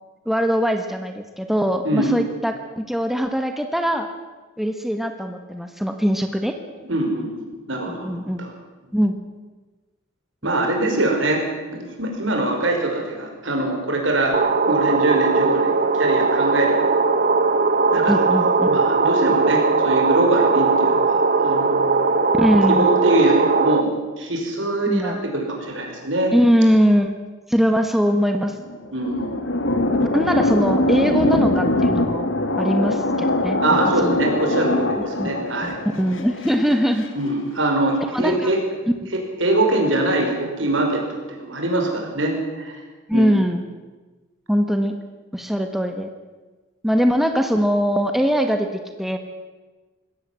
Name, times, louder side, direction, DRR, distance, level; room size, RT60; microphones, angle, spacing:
voice 1, 0.2-4.1 4.6-6.6 7.9-8.5 8.9-9.2 18.1-18.7 22.4-23.0 24.9-25.2 26.3-27.1 27.5-28.5 30.0-32.3 32.6-34.2 35.2-35.3 35.6-35.7 36.0-37.1 38.1-38.5 43.1-43.6 44.5-45.0 45.3-46.1 46.8-48.7 49.0-49.2, equal, ahead, 5 dB, 1.4 m, -21 dB
voice 2, 6.8-8.5 10.4-11.4 11.7-14.4 14.7-16.9 17.9-22.1 22.7-23.9 24.2-26.3 28.9-29.5 33.6-35.8 37.2-38.6 39.4-42.7 43.1-43.3, right 2 dB, 75° right, 1 dB, 5.6 m, -23 dB
sound 1, 14.3-23.8, right 4 dB, 45° right, 1.2 m, -19 dB
sound 2, 28.5-37.1, left 2 dB, 85° left, 2.0 m, -22 dB
21.0 x 17.0 x 7.7 m, 1.3 s
head